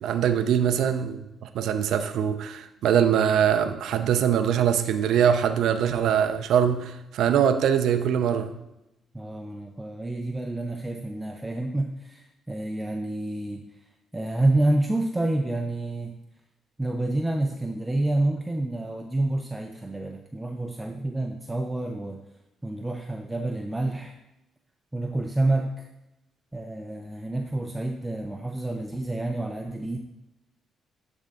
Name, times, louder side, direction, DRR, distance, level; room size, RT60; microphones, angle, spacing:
voice 1, 0.0-8.5, right 8 dB, 75° right, 9 dB, 0.5 m, -23 dB
voice 2, 9.1-13.6 14.1-16.2 16.8-22.2 22.6-24.2 24.9-25.9 26.5-30.0, right 2 dB, 10° right, 3 dB, 0.5 m, -28 dB
10.5 x 3.6 x 3.8 m, 0.92 s
cardioid pair, 90°, 0 cm